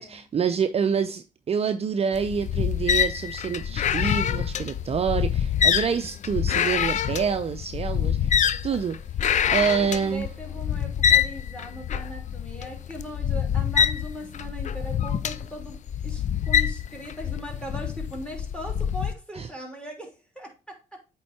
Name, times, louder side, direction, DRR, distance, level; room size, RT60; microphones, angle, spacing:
voice 1, 0.0-9.0 9.5-10.3 19.4-19.5, right 6 dB, 40° right, 0.6 m, -27 dB
sound 1, 2.1-19.1, left 9 dB, 50° left, 0.5 m, -26 dB
voice 2, 7.9-8.8 9.5-21.0, equal, 5° left, 3.1 m, -40 dB
8.5 x 3.8 x 4.3 m
hypercardioid pair, 55°, 16 cm